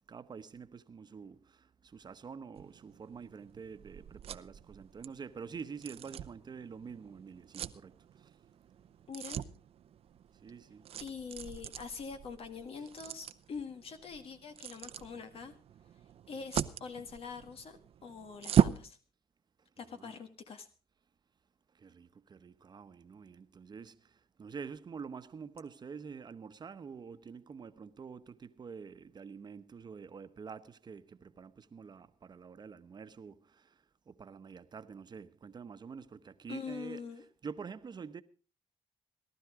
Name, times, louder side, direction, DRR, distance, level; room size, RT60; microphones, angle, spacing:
voice 1, 0.1-1.6 1.9-7.9 10.4-10.8 12.8-12.9 19.8-20.1 21.8-24.0 24.4-33.4 34.1-37.0 37.4-38.2, right 6 dB, 40° right, 1.1 m, -47 dB
sound 1, 2.6-18.9, right 9 dB, 65° right, 0.7 m, -38 dB
voice 2, 9.1-9.4 11.0-15.5 16.3-19.0 19.8-20.7 36.5-37.2, left 5 dB, 60° left, 1.7 m, -44 dB
18.5 x 12.0 x 4.9 m
cardioid pair, 85°, 11 cm